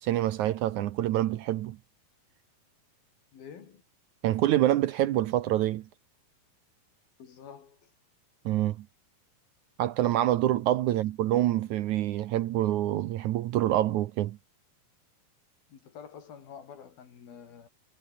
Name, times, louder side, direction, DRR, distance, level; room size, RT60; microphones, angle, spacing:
voice 1, 0.0-1.8 4.2-5.9 8.5-8.8 9.8-14.4, right 13 dB, 70° right, 1.9 m, -26 dB
voice 2, 3.3-3.8 7.2-7.9 10.9-11.1 15.7-17.7, left 7 dB, 85° left, 5.2 m, -48 dB
omnidirectional pair, 4.1 m